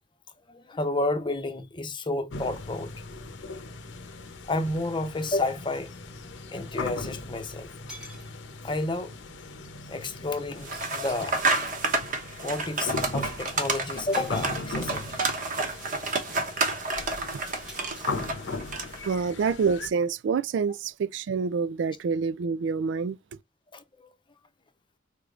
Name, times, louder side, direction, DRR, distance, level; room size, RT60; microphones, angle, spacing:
voice 1, 0.5-2.9 4.5-7.7 8.6-9.1 9.9-11.7 12.3-15.1 18.0-18.9 23.7-24.1, left 2 dB, 25° left, 0.7 m, -31 dB
sound 1, 2.3-19.9, left 3 dB, 80° left, 0.8 m, -39 dB
sound 2, 5.2-5.3 7.3-7.4 7.9-8.8 10.7-12.0 14.1-15.1 17.7-18.8, equal, 5° right, 1.1 m, -48 dB
sound 3, 10.6-19.1, right 3 dB, 45° right, 1.0 m, -30 dB
voice 2, 19.0-23.2, right 5 dB, 70° right, 0.3 m, -27 dB
4.7 x 3.4 x 2.4 m
head